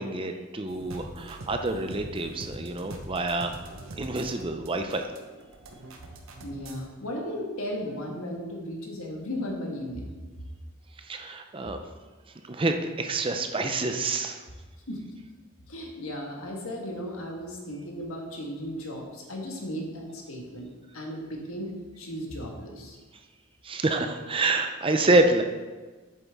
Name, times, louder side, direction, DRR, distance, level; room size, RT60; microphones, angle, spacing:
voice 1, 0.0-3.5 4.0-5.1 11.0-11.8 12.5-14.4 23.6-25.4, right 2 dB, 25° right, 6 dB, 0.5 m, -27 dB
sound 1, 0.7-6.8, right 1 dB, 70° right, 1.0 m, -43 dB
voice 2, 6.4-10.1 14.9-15.0 15.7-23.0, equal, 80° left, 0 dB, 1.5 m, -36 dB
8.2 x 7.1 x 3.5 m, 1.3 s
head